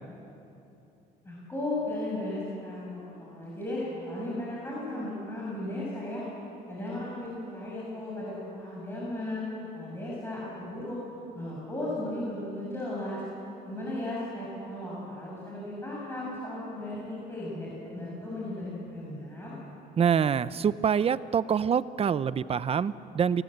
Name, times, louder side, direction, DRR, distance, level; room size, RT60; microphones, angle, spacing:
voice 1, 1.2-6.2 6.7-9.5 9.7-11.0 11.3-13.2 13.7-19.6, left 1 dB, 15° left, -6 dB, 7.3 m, -35 dB
voice 2, 20.0-23.4, right 7 dB, 35° right, 16 dB, 0.7 m, -26 dB
29.0 x 19.0 x 8.0 m, 2.9 s
cardioid pair, 110°, 17 cm